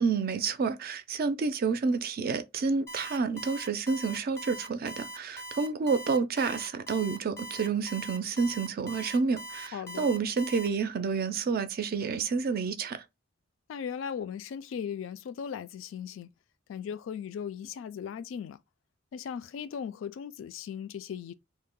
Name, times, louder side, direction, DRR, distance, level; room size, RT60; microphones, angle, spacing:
voice 1, 0.0-13.0, right 5 dB, 50° right, 0.4 m, -29 dB
Alarm, 2.9-10.7, right 1 dB, 15° left, 0.5 m, -41 dB
voice 2, 9.7-10.1 13.7-16.3 16.7-18.6 19.1-21.3, left 7 dB, 75° left, 0.3 m, -37 dB
2.7 x 2.1 x 3.6 m
head